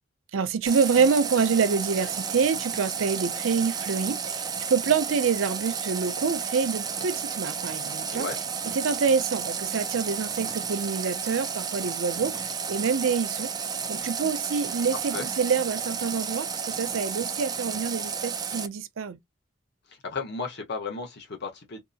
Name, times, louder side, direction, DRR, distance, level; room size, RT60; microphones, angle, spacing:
voice 1, 0.3-8.3 8.7-13.5 13.9-19.2, right 5 dB, 75° right, 0.5 m, -26 dB
Water tap faucet, 0.7-18.7, right 6 dB, 20° right, 0.3 m, -32 dB
voice 2, 14.9-15.3 19.9-21.8, left 4 dB, 60° left, 0.8 m, -34 dB
2.7 x 2.5 x 2.3 m
head